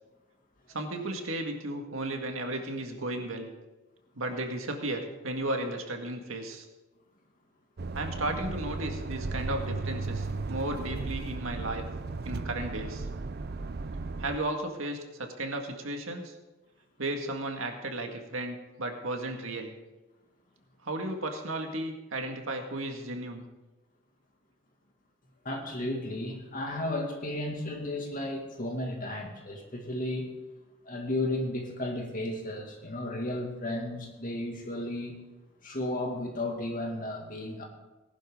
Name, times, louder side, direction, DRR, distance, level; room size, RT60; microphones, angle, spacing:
voice 1, 0.7-3.5 4.2-6.7 7.9-11.8 12.2-13.1 14.2-16.4 17.0-19.7 20.8-23.4, right 1 dB, 80° right, 3 dB, 1.9 m, -34 dB
sound 1, 7.8-14.4, right 3 dB, 50° right, 0.6 m, -35 dB
voice 2, 25.4-30.3 30.9-35.2 35.6-37.7, left 1 dB, 40° left, 1 dB, 2.3 m, -34 dB
18.5 x 11.5 x 3.9 m, 1.1 s
head